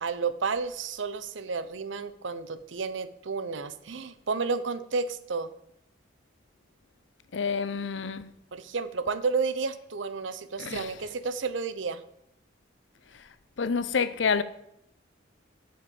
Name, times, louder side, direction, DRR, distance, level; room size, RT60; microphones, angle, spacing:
voice 1, 0.0-5.5 8.5-12.0, right 4 dB, 80° right, 0.7 m, -31 dB
voice 2, 7.3-8.4 10.6-11.0 13.1-13.3 13.6-14.4, left 5 dB, 75° left, 0.6 m, -28 dB
8.5 x 5.6 x 6.9 m
head